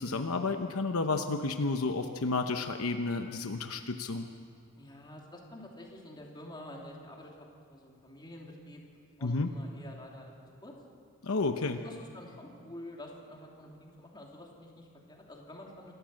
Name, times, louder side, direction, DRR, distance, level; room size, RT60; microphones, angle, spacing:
voice 1, 0.0-4.3 9.2-9.5 11.2-11.8, left 3 dB, 70° left, 6 dB, 0.9 m, -31 dB
voice 2, 4.8-8.8 9.2-10.7 11.7-15.9, left 1 dB, 20° left, -1 dB, 3.0 m, -48 dB
27.5 x 14.0 x 7.7 m, 2.2 s
head